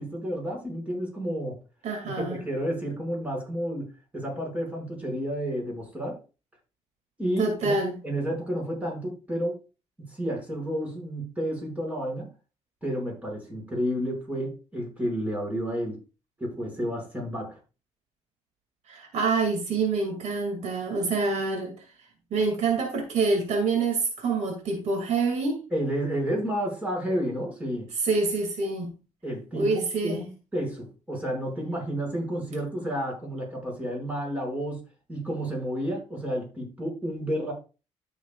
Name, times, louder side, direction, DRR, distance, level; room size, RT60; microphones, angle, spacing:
voice 1, 0.0-1.6 2.2-6.2 7.2-7.7 8.0-9.6 10.0-12.3 12.8-16.0 16.4-17.6 25.7-27.9 29.2-34.8 35.1-37.5, equal, 10° right, -1 dB, 5.7 m, -31 dB
voice 2, 1.8-2.4 7.4-8.0 18.9-21.8 22.3-25.6 28.0-28.9 29.5-30.2, right 4 dB, 70° right, 3 dB, 2.4 m, -26 dB
13.0 x 6.6 x 2.4 m, 0.32 s
cardioid pair, 100°, 12 cm